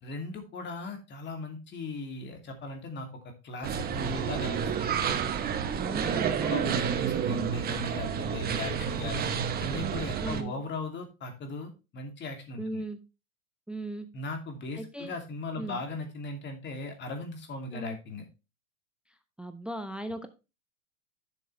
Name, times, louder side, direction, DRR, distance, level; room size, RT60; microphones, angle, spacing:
voice 1, 0.0-3.1 3.4-4.7 6.0-9.3 9.6-12.8 14.1-18.2, left 3 dB, 25° left, 4 dB, 2.6 m, -38 dB
sound 1, 3.6-10.4, right 7 dB, 20° right, 1.0 m, -30 dB
voice 2, 5.7-6.9 10.2-10.5 12.6-13.0 13.7-14.1 14.8-15.1 15.6-15.8 17.7-18.0 19.4-20.3, right 1 dB, ahead, 9 dB, 0.5 m, -37 dB
11.0 x 6.7 x 3.2 m, 0.27 s
hypercardioid pair, 120°, 45 cm